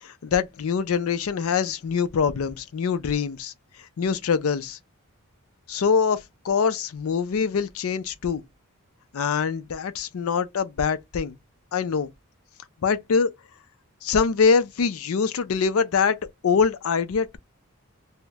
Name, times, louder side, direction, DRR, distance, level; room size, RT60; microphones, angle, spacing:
voice 1, 0.0-3.5 4.0-4.8 5.7-8.4 9.1-11.3 11.7-12.1 12.8-13.3 14.0-16.2 16.4-17.4, left 6 dB, 75° left, 0.4 m, -24 dB
2.9 x 2.1 x 3.4 m
head